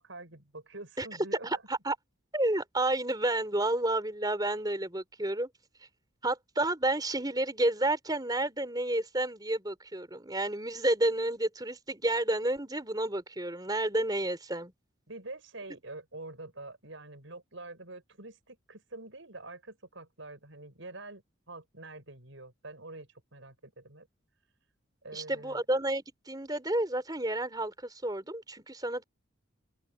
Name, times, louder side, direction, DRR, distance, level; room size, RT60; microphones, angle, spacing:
voice 1, 0.0-1.6 15.1-24.1 25.0-25.6, right 2 dB, 70° right, 5.7 m, -46 dB
voice 2, 1.4-2.0 2.3-5.5 6.2-14.7 25.1-29.0, right 1 dB, 20° right, 4.4 m, -30 dB
open air
head